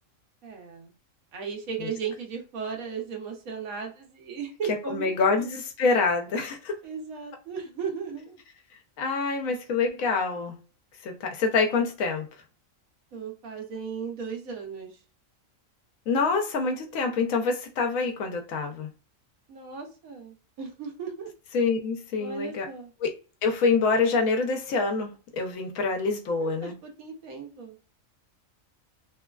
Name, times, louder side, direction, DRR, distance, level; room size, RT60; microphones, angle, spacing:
voice 1, 0.4-0.9 1.3-5.5 6.8-8.4 13.1-15.0 19.5-21.3 22.2-22.9 26.4-27.8, right 6 dB, 90° right, 1.2 m, -36 dB
voice 2, 4.9-6.7 9.0-10.6 11.0-12.3 16.1-18.9 21.5-22.7 23.0-23.1 23.4-26.8, left 4 dB, 85° left, 1.1 m, -26 dB
3.1 x 2.3 x 2.2 m
omnidirectional pair, 1.4 m